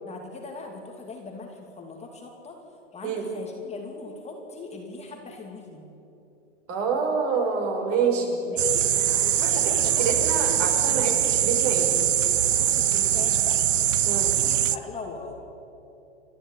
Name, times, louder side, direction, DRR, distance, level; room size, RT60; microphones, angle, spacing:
voice 1, 0.0-2.6 2.9-5.9 8.5-11.0 12.6-13.6 14.2-15.4, left 3 dB, 15° left, 1 dB, 2.7 m, -40 dB
voice 2, 6.7-8.4 9.4-9.5 10.0-12.0 14.0-14.3, right 5 dB, 40° right, 2 dB, 5.6 m, -26 dB
sound 1, 8.6-14.8, right 10 dB, 80° right, 0.9 m, -22 dB
29.5 x 12.0 x 9.1 m, 2.9 s
hypercardioid pair, 115°, 36 cm